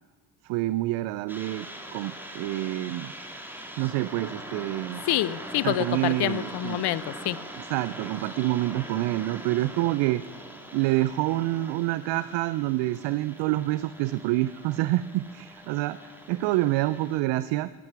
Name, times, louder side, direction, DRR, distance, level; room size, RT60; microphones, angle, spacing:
voice 1, 0.4-1.7 1.9-3.1 3.8-5.0 5.6-6.8 7.7-10.2 10.7-17.7, right 17 dB, 65° right, 15 dB, 0.5 m, -27 dB
sound 1, 1.3-17.2, right 1 dB, 5° right, 2.0 m, -42 dB
voice 2, 5.0-7.4, left 14 dB, 55° left, 19 dB, 0.6 m, -27 dB
14.5 x 10.5 x 4.6 m, 1.5 s
hypercardioid pair, 50°, 47 cm